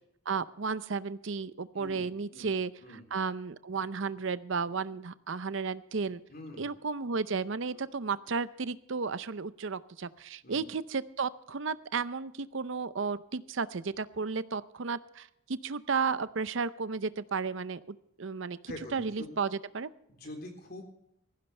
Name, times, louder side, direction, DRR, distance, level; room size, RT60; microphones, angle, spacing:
voice 1, 0.3-2.7 3.1-6.2 6.6-19.9, right 5 dB, 60° right, 16 dB, 0.6 m, -33 dB
voice 2, 6.3-6.7 7.7-7.9 10.4-10.6 18.7-19.3 20.1-20.8, left 1 dB, 45° left, 3 dB, 3.8 m, -45 dB
18.0 x 15.0 x 3.3 m, 0.77 s
head